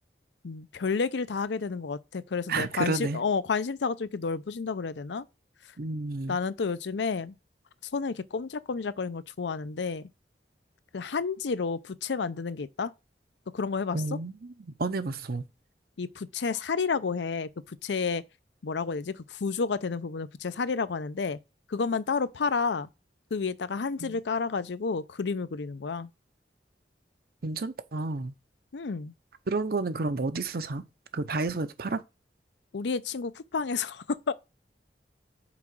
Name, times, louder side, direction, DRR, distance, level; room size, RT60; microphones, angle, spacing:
voice 1, 0.4-5.2 6.3-7.4 7.9-10.0 10.9-12.9 13.5-14.0 16.0-18.2 18.6-21.4 21.7-22.9 23.3-26.1 28.7-29.1 32.7-34.3, left 5 dB, 85° left, 0.5 m, -30 dB
voice 2, 2.5-3.2 5.8-6.4 13.9-15.4 24.0-24.2 27.4-28.3 29.5-30.8 31.1-32.0, right 3 dB, 60° right, 0.7 m, -31 dB
6.0 x 4.8 x 6.1 m
head